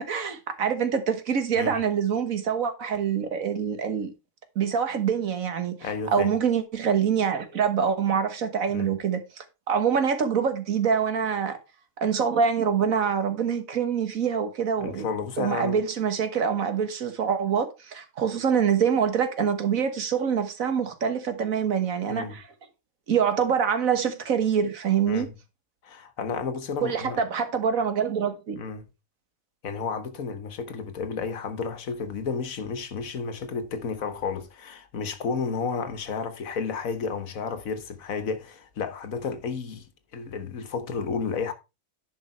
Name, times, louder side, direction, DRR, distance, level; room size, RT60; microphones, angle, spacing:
voice 1, 0.0-4.1 4.6-11.6 12.0-15.1 15.4-22.4 23.1-25.3 26.8-28.6, right 7 dB, 80° right, 1.8 m, -25 dB
voice 2, 5.8-6.3 8.7-8.9 14.8-15.8 22.1-22.4 25.1-25.3 25.8-27.2 28.6-28.9 29.6-39.9 40.1-41.5, left 5 dB, 85° left, 1.6 m, -32 dB
11.0 x 5.4 x 4.4 m
omnidirectional pair, 1.4 m